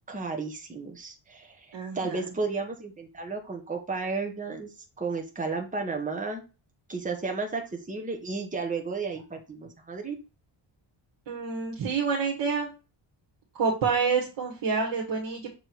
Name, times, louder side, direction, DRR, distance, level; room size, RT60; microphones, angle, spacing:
voice 1, 0.1-1.7 1.9-4.7 5.0-6.4 6.9-10.2, right 4 dB, 15° right, 3 dB, 1.3 m, -33 dB
voice 2, 1.7-2.3 11.3-12.7 13.5-15.5, right 5 dB, 60° right, -1 dB, 1.9 m, -28 dB
6.9 x 3.7 x 4.6 m, 0.30 s
cardioid pair, 140°, 49 cm